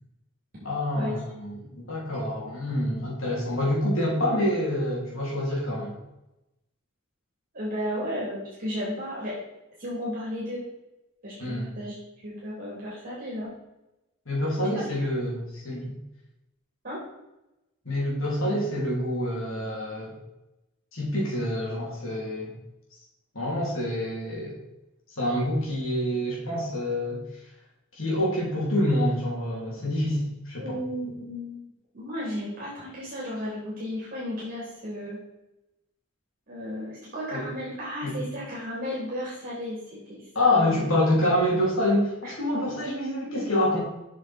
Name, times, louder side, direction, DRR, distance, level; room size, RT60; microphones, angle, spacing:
voice 1, 0.6-6.0 11.4-11.7 14.2-16.0 17.8-20.1 20.9-22.5 23.3-24.6 25.2-27.4 27.9-30.8 37.3-37.5 38.0-38.2 40.3-43.8, left 1 dB, 65° left, -4 dB, 3.4 m, -27 dB
voice 2, 7.5-9.4 9.8-10.7 11.2-12.0 12.2-13.5 14.7-15.1 16.8-17.0 30.6-31.6 31.9-35.2 36.5-40.8 42.2-42.3, equal, 40° right, -7 dB, 3.3 m, -34 dB
8.0 x 6.3 x 4.4 m, 0.94 s
head